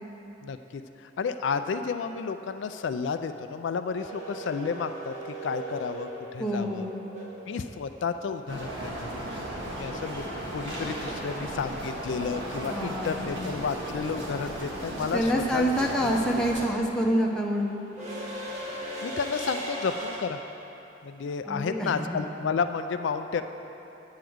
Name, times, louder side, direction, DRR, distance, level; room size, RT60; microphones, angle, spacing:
voice 1, 0.4-5.1 5.4-6.9 7.5-9.4 9.7-10.2 10.5-16.4 19.0-20.4 21.0-23.4, left 5 dB, 80° left, 9 dB, 0.4 m, -32 dB
emmentaler steam train, 4.0-8.0 10.4-10.5 11.8-12.1 12.4-20.2, right 1 dB, 40° right, 1.4 m, -39 dB
voice 2, 6.4-7.0 12.6-13.6 15.1-17.8 21.5-22.2, equal, 5° left, -2 dB, 0.7 m, -27 dB
sound 1, 8.5-16.6, right 1 dB, 90° right, 1.6 m, -35 dB
9.1 x 4.8 x 7.8 m, 3.0 s
head